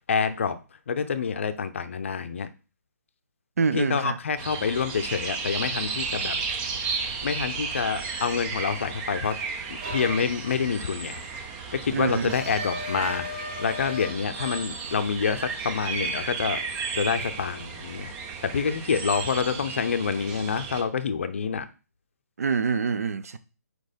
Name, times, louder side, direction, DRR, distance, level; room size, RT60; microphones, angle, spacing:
voice 1, 0.1-0.6 0.9-2.5 3.7-6.3 7.2-9.3 9.9-11.2 11.8-16.6 16.9-18.1 18.4-21.7, left 6 dB, 45° left, 0.6 m, -27 dB
voice 2, 3.6-4.2 11.9-12.3 22.4-23.4, right 5 dB, 60° right, 0.6 m, -26 dB
sound 1, 4.4-20.8, right 5 dB, 10° right, 0.4 m, -34 dB
sound 2, 9.8-10.2 12.3-14.1 14.4-14.7, left 1 dB, 25° right, 1.8 m, -35 dB
4.7 x 4.2 x 5.1 m
hypercardioid pair, 170°, 9 cm